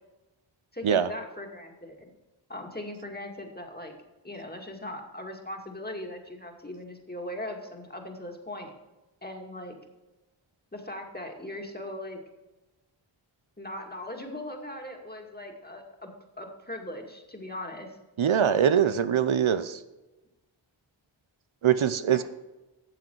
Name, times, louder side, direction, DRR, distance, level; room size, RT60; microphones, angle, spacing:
voice 1, 0.7-2.1 2.5-3.9 4.2-8.7 9.2-9.8 10.7-12.2 13.6-16.1 16.4-18.0 22.1-22.2, left 1 dB, 20° left, 2 dB, 2.3 m, -39 dB
voice 2, 18.2-19.8 21.6-22.2, right 8 dB, 80° right, 12 dB, 0.7 m, -23 dB
13.0 x 7.7 x 4.7 m, 1.1 s
wide cardioid pair, 45°, 48 cm